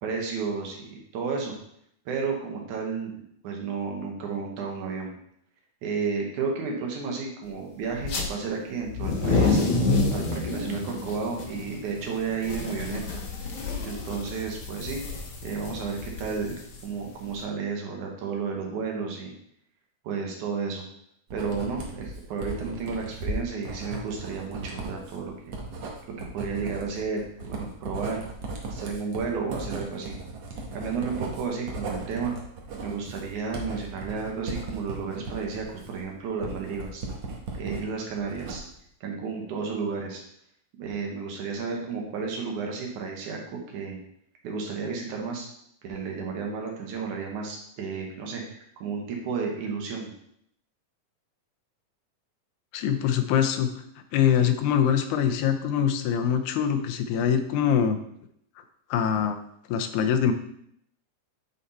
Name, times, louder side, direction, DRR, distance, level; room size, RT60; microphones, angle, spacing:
voice 1, 0.0-1.5 2.1-5.2 5.8-9.6 10.1-13.2 13.8-15.0 15.4-16.5 16.8-19.3 20.0-20.8 21.3-25.6 26.2-28.2 28.7-30.2 30.7-32.4 32.8-37.0 37.6-38.6 39.0-40.2 40.8-44.0 44.4-45.5 45.8-50.1, right 5 dB, 80° right, 0 dB, 2.7 m, -32 dB
sound 1, 8.0-8.2 8.8-17.3, left 3 dB, 60° left, 1.5 m, -28 dB
Writing, 21.3-37.8 38.2-38.9, right 3 dB, 60° right, 1.3 m, -37 dB
voice 2, 52.7-53.7 54.1-58.0 58.9-59.4 59.7-60.3, left 8 dB, 85° left, 7 dB, 2.0 m, -23 dB
8.4 x 3.9 x 4.1 m, 0.71 s
omnidirectional pair, 3.4 m